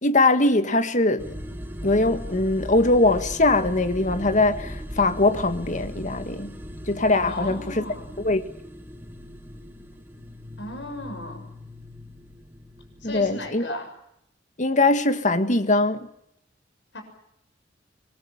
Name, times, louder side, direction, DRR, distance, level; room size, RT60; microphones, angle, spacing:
voice 1, 0.0-1.4 1.8-6.6 6.9-7.9 8.2-8.4 13.0-13.8 14.6-16.1, left 2 dB, 45° left, 1.8 m, -21 dB
sound 1, 1.2-13.5, equal, 10° right, 1.9 m, -39 dB
voice 2, 7.3-8.1 10.6-11.5 13.0-13.9 16.9-17.0, left 1 dB, 70° left, 6.4 m, -36 dB
26.5 x 22.5 x 7.3 m
head